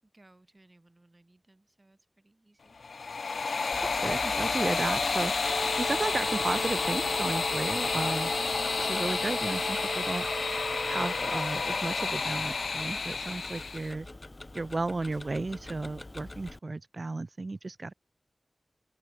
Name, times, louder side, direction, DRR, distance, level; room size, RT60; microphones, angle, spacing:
voice 1, 0.0-2.8, right 2 dB, 30° right, 6.7 m, -62 dB
sound 1, 2.8-13.9, left 4 dB, 85° left, 0.5 m, -30 dB
Tick-tock, 3.7-16.6, left 2 dB, 30° left, 2.0 m, -46 dB
voice 2, 4.0-8.3 8.8-10.3 10.9-14.1 14.5-17.9, right 3 dB, 50° right, 1.1 m, -34 dB
sound 2, 5.4-11.4, right 4 dB, 70° right, 0.4 m, -39 dB
open air
wide cardioid pair, 80°, 0 cm